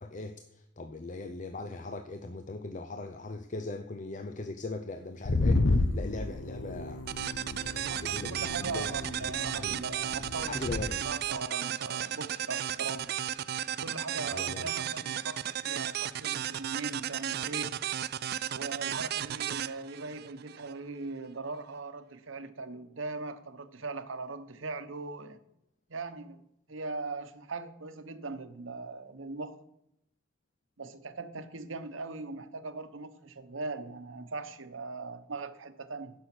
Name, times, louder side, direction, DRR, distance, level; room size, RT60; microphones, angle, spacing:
voice 1, 0.0-7.1 7.6-8.9 9.2-9.8 10.5-11.1 14.3-14.7, left 2 dB, 40° left, 8 dB, 0.6 m, -40 dB
sound 1, 5.3-10.9, left 2 dB, 75° left, 0.9 m, -32 dB
sound 2, 7.1-20.7, right 10 dB, 50° right, 0.4 m, -34 dB
voice 2, 7.9-10.6 11.0-13.1 13.8-17.7 18.5-25.4 25.9-26.4 26.7-29.6 30.8-36.1, right 3 dB, 80° right, 10 dB, 1.0 m, -40 dB
16.0 x 6.5 x 6.0 m, 0.79 s
head